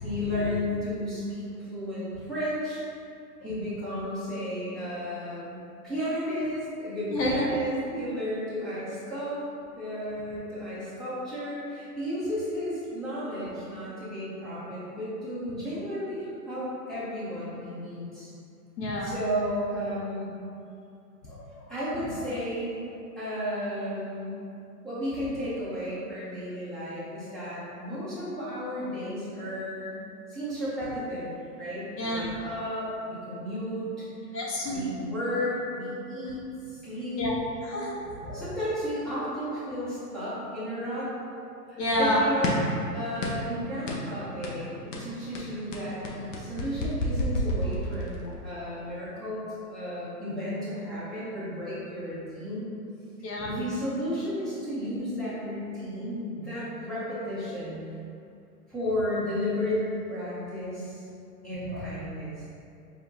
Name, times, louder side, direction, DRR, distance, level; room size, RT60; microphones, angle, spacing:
voice 1, 0.0-2.8 3.4-9.4 9.7-18.3 19.0-20.3 21.7-24.4 24.8-34.1 34.7-36.4 36.7-37.3 38.3-41.1 41.7-42.6 42.9-52.7 53.4-57.8 58.7-61.0 61.4-62.4, equal, ahead, -13 dB, 0.6 m, -33 dB
voice 2, 7.1-7.5 18.8-19.1 21.2-21.7 32.0-32.3 34.3-34.9 37.2-37.3 37.6-38.4 41.8-42.2 48.2-48.7 53.2-53.5 61.6-61.9, left 1 dB, 75° left, -4 dB, 1.0 m, -30 dB
sound 1, 42.4-42.8 43.2-43.5 43.9-44.1 44.4-44.6 44.9-48.3, left 1 dB, 50° left, 0.8 m, -30 dB
4.9 x 3.4 x 2.7 m, 2.5 s
hypercardioid pair, 140°, 50 cm